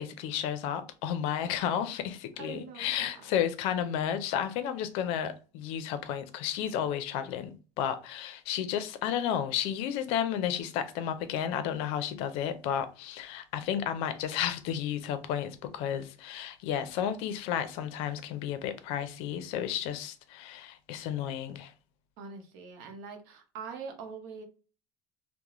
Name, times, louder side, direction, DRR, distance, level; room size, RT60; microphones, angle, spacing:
voice 1, 0.0-21.7, left 9 dB, 75° left, 0.4 m, -32 dB
voice 2, 2.4-2.8 3.1-3.3 22.2-24.4, right 5 dB, 85° right, 0.7 m, -43 dB
2.3 x 2.0 x 2.9 m
supercardioid pair, 115°, 10 cm